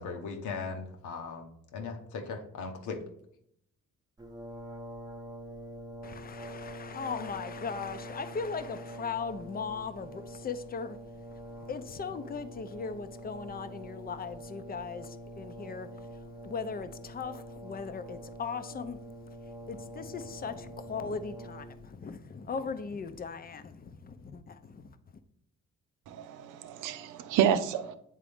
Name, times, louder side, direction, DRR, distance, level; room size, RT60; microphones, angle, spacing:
voice 1, 0.0-3.0, left 4 dB, 80° left, 1.1 m, -38 dB
Brass instrument, 4.2-22.0, equal, 15° right, 0.8 m, -45 dB
voice 2, 6.0-11.0 11.3-15.9 16.4-19.0 19.7-24.9, left 5 dB, 30° left, 0.6 m, -38 dB
voice 3, 26.1-28.0, right 9 dB, 90° right, 0.6 m, -29 dB
8.5 x 3.7 x 3.5 m
cardioid pair, 90°, 30 cm